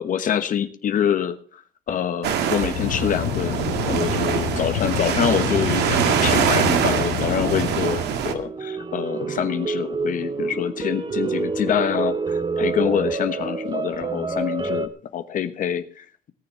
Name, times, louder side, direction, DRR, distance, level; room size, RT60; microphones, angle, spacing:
voice 1, 0.0-1.6 1.9-16.3, left 8 dB, 50° left, 9 dB, 1.2 m, -26 dB
sound 1, 2.2-8.3, right 8 dB, 80° right, 2.1 m, -23 dB
sound 2, 2.7-7.8, left 14 dB, 80° left, 0.7 m, -29 dB
sound 3, 8.2-14.9, right 4 dB, 25° right, 1.2 m, -27 dB
18.0 x 7.0 x 7.0 m, 0.43 s
cardioid pair, 110°, 17 cm